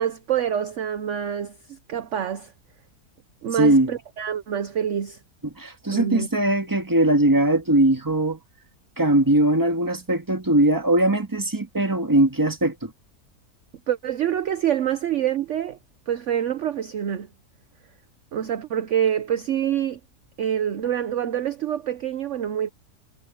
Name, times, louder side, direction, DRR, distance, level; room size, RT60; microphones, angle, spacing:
voice 1, 0.0-2.5 3.4-5.2 5.9-6.3 13.9-15.8 16.1-17.3 18.3-20.0 20.4-22.7, right 9 dB, 55° right, 1.0 m, -26 dB
voice 2, 3.5-3.9 5.4-8.4 9.0-12.9, right 1 dB, 10° right, 1.8 m, -20 dB
omnidirectional pair, 1.7 m